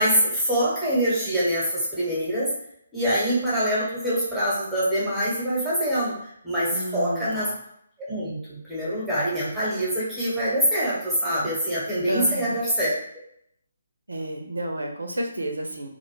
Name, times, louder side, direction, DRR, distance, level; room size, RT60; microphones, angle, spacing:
voice 1, 0.0-2.5 2.9-6.1 6.4-7.5 8.1-12.9, equal, 5° right, -10 dB, 0.8 m, -24 dB
voice 2, 6.7-7.6 12.0-12.6 14.1-15.9, right 1 dB, 75° right, 3 dB, 0.5 m, -31 dB
2.1 x 2.0 x 3.1 m, 0.71 s
figure-of-eight pair, 140°, 0 cm